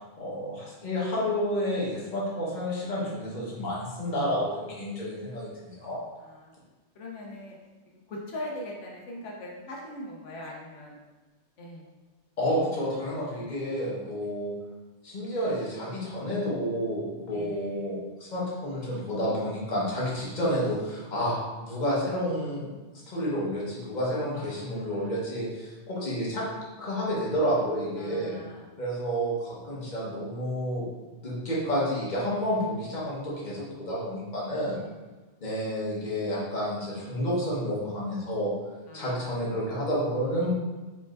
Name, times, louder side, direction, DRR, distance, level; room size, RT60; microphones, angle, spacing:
voice 1, 0.2-6.0 12.4-14.5 15.0-22.7 23.1-26.4 26.8-28.3 28.8-30.8 31.2-34.8 35.4-38.5 38.9-40.5, equal, 40° left, -6 dB, 1.3 m, -30 dB
voice 2, 6.2-6.5 6.9-7.6 8.1-11.0 11.6-11.9 17.3-17.9 21.2-21.3 24.3-25.1 25.9-26.1 28.0-28.7 34.7-35.1 38.9-39.4, left 1 dB, 85° left, -3 dB, 1.1 m, -41 dB
4.7 x 4.3 x 2.5 m, 1.2 s
omnidirectional pair, 1.2 m